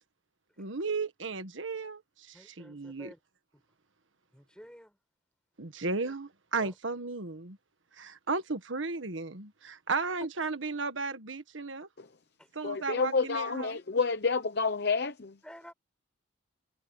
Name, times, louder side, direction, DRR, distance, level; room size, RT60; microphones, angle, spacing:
voice 1, 0.6-2.0 2.3-3.1 5.6-7.6 8.0-11.9 12.5-13.8, right 4 dB, 80° right, 1.5 m, -34 dB
voice 2, 2.3-3.2 4.3-5.0 5.8-6.1 6.6-6.7 12.4-12.5 15.4-15.7, equal, 5° left, 4.8 m, -51 dB
voice 3, 12.6-15.4, left 4 dB, 55° left, 0.8 m, -29 dB
head